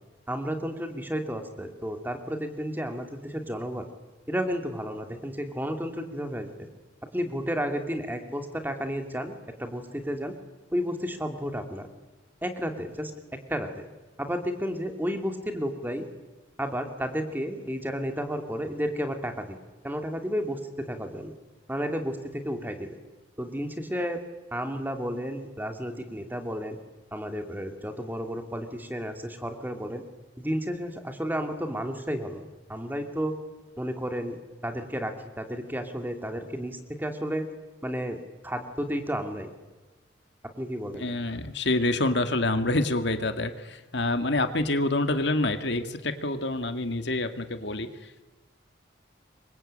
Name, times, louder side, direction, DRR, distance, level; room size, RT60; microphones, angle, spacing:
voice 1, 0.3-3.8 4.3-6.5 7.1-10.3 10.7-11.9 12.4-13.9 14.2-16.1 16.6-19.6 19.8-21.3 21.7-22.9 23.4-24.2 24.5-26.8 27.1-30.0 30.4-32.4 32.7-33.4 33.8-34.4 34.6-37.5 37.8-38.2 38.4-39.5 40.6-41.1, equal, 10° right, 6 dB, 2.6 m, -32 dB
voice 2, 41.0-48.2, left 2 dB, 65° left, 8 dB, 2.1 m, -27 dB
27.0 x 24.5 x 8.9 m, 1.2 s
head